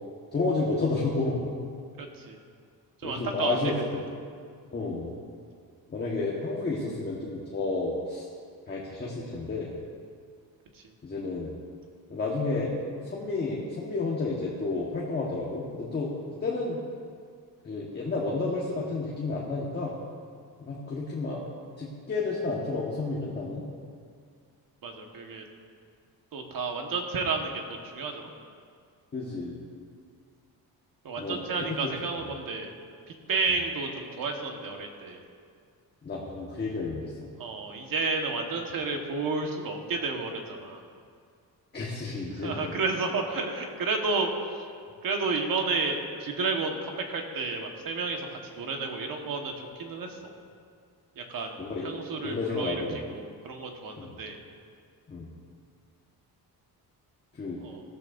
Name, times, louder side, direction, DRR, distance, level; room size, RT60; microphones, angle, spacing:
voice 1, 0.3-1.5 3.0-4.1 4.7-5.2 5.9-8.3 8.7-9.7 11.0-11.5 12.1-12.7 13.0-16.2 16.4-16.8 17.6-19.9 20.6-21.4 21.8-23.6 29.1-29.6 31.2-31.9 36.0-37.3 41.7-42.7 51.6-51.9 52.2-53.0 54.0-54.1 55.1-55.3 57.4-57.6, left 3 dB, 25° left, -4 dB, 1.4 m, -31 dB
voice 2, 2.0-2.4 3.0-3.5 10.7-10.9 24.8-25.4 26.3-28.3 31.0-32.8 33.3-35.2 37.4-40.8 42.4-44.6 45.0-48.3 48.6-50.3 51.2-52.8 53.1-54.4 57.6-57.8, right 4 dB, 65° right, 2 dB, 1.5 m, -31 dB
16.5 x 13.5 x 2.6 m, 2.2 s
wide cardioid pair, 150°, 37 cm